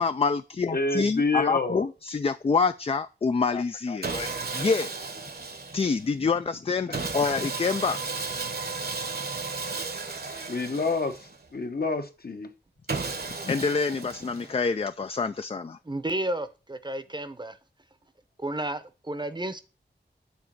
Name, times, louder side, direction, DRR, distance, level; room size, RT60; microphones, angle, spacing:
voice 1, 0.0-4.9 5.7-8.0 13.4-15.8, left 5 dB, 30° left, 0.3 m, -27 dB
voice 2, 0.7-1.9 6.9-7.0 10.5-12.5, left 3 dB, 55° left, 1.0 m, -28 dB
Sawing, 4.0-6.1 6.9-11.5 12.9-14.7, right 4 dB, 55° right, 1.0 m, -34 dB
voice 3, 15.8-17.6 18.4-19.6, right 1 dB, 25° right, 0.7 m, -32 dB
7.1 x 3.7 x 6.0 m
wide cardioid pair, 75°, 19 cm